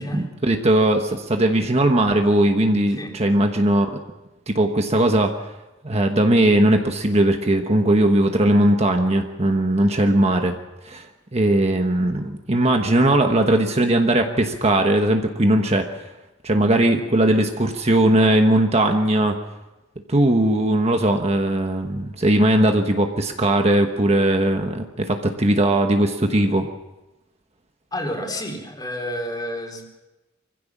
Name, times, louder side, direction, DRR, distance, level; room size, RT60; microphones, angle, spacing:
voice 1, 0.0-4.0 4.5-5.3 5.8-10.6 10.8-11.1 11.3-16.0 16.4-19.4 20.1-26.7, right 1 dB, 35° right, 4 dB, 1.3 m, -19 dB
voice 2, 27.9-29.8, equal, 20° left, 2 dB, 3.6 m, -30 dB
24.0 x 15.5 x 7.3 m, 1.0 s
head